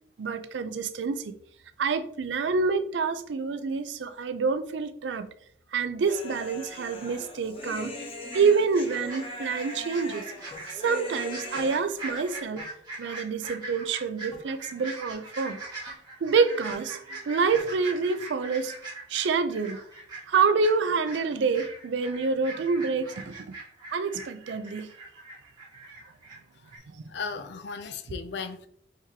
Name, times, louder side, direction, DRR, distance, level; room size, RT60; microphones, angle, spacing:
voice 1, 0.2-1.4 1.8-5.3 5.7-7.9 8.3-10.2 10.8-12.6 13.0-15.6 16.2-18.7 19.1-19.8 20.3-23.5 23.9-24.9, right 5 dB, 75° right, 0.4 m, -27 dB
Human voice, 6.0-12.5, left 2 dB, 30° left, 0.8 m, -40 dB
sound 1, 8.3-26.4 26.6-26.8, right 3 dB, 25° right, 1.4 m, -41 dB
sound 2, 10.5-10.7 11.6-11.8 12.6-12.7 13.4-13.5 14.3-14.5 15.1-15.2 15.9-16.0 16.7-16.8 17.5-17.8, left 4 dB, 15° left, 1.6 m, -47 dB
voice 2, 27.1-28.7, left 5 dB, 65° left, 0.4 m, -36 dB
4.7 x 3.6 x 2.8 m
head